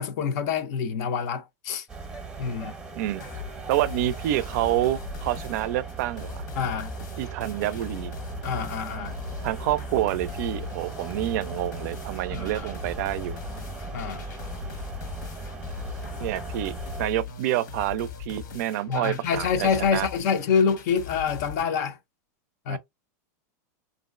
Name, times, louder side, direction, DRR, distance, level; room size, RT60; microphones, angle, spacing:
voice 1, 0.0-1.8 2.4-2.7 6.6-7.0 8.4-9.1 12.3-12.7 13.9-14.3 18.9-22.0 22.7-22.8, left 6 dB, 65° left, 0.5 m, -26 dB
sound 1, 1.9-17.1, right 4 dB, 10° right, 0.7 m, -38 dB
sound 2, 3.1-21.6, left 8 dB, 80° left, 1.1 m, -40 dB
voice 2, 3.7-6.4 7.2-8.1 9.4-13.4 16.2-20.1 22.7-22.8, right 14 dB, 65° right, 0.4 m, -28 dB
3.0 x 2.5 x 2.4 m
supercardioid pair, 145°, 10 cm